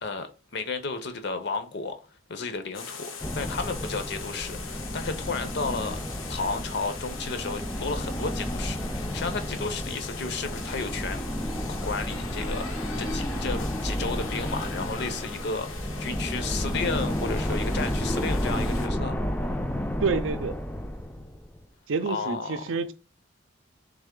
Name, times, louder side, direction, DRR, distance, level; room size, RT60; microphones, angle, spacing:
voice 1, 0.0-2.0 2.3-6.0 6.3-11.3 11.7-19.2 22.1-22.6, left 4 dB, 55° left, 0.6 m, -33 dB
sound 1, 2.7-18.9, left 4 dB, 90° left, 0.8 m, -41 dB
sound 2, 3.2-21.6, equal, 10° left, 0.4 m, -31 dB
voice 2, 20.0-20.6 21.9-22.9, right 4 dB, 75° right, 0.5 m, -28 dB
3.3 x 3.2 x 3.7 m
head